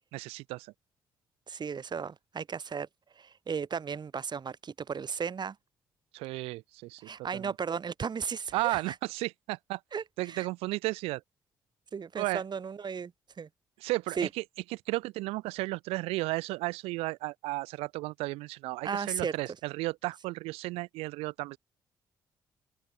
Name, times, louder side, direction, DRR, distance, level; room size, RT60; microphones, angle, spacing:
voice 1, 0.1-0.7 6.1-7.5 8.5-9.8 10.2-11.2 12.1-12.4 13.8-14.4 14.7-21.6, right 21 dB, 75° right, 1.7 m, -34 dB
voice 2, 1.5-2.9 3.2-5.6 7.0-8.8 9.9-10.5 11.9-13.1 13.4-13.5 14.2-14.3 18.8-19.4, right 6 dB, 45° right, 3.5 m, -35 dB
hypercardioid pair, 45°, 10 cm